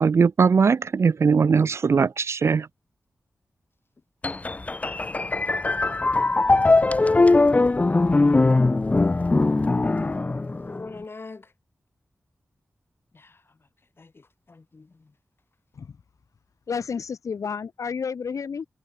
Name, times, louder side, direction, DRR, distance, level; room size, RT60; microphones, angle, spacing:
voice 1, 0.0-2.7, right 5 dB, 60° right, 0.4 m, -20 dB
sound 1, 4.2-10.9, left 3 dB, 25° left, 0.4 m, -20 dB
voice 2, 8.1-9.2 10.6-11.5 13.1-13.6 14.0-15.1, left 3 dB, 45° left, 5.3 m, -44 dB
voice 3, 16.7-18.7, left 6 dB, 85° left, 4.0 m, -31 dB
wide cardioid pair, 85°, 5 cm